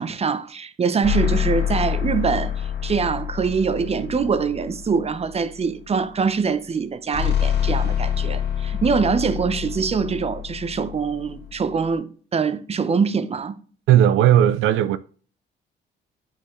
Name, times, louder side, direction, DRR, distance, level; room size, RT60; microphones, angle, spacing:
voice 1, 0.0-13.6, right 5 dB, 30° right, 0.7 m, -24 dB
sound 1, 1.0-5.6 7.1-11.9, left 9 dB, 55° left, 1.9 m, -26 dB
voice 2, 13.9-15.0, right 11 dB, 85° right, 0.4 m, -16 dB
8.7 x 4.5 x 3.1 m
cardioid pair, 90°, 20 cm